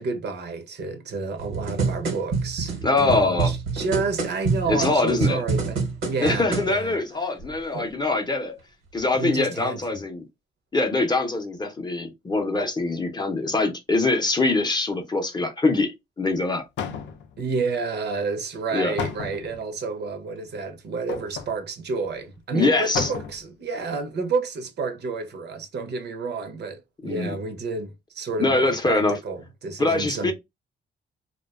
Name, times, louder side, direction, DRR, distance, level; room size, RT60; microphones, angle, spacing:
voice 1, 0.0-5.8 6.1-7.0 7.7-7.9 9.1-10.0 17.4-30.3, right 4 dB, 55° right, 0.6 m, -30 dB
sound 1, 1.4-6.7 7.4-7.5, right 4 dB, 80° right, 1.0 m, -27 dB
voice 2, 2.8-3.5 4.7-5.4 6.2-8.6 8.9-10.3 10.7-16.6 18.7-19.0 22.5-23.1 27.0-27.4 28.4-29.1 29.8-30.3, left 3 dB, 20° left, 0.6 m, -23 dB
sound 2, 16.4-16.5 16.8-17.5 19.0-19.6 21.1-21.5 22.1-22.2 22.4-22.5 22.9-23.5 23.9-24.0, left 7 dB, 70° left, 0.5 m, -32 dB
2.4 x 2.2 x 2.3 m
cardioid pair, 90°, 20 cm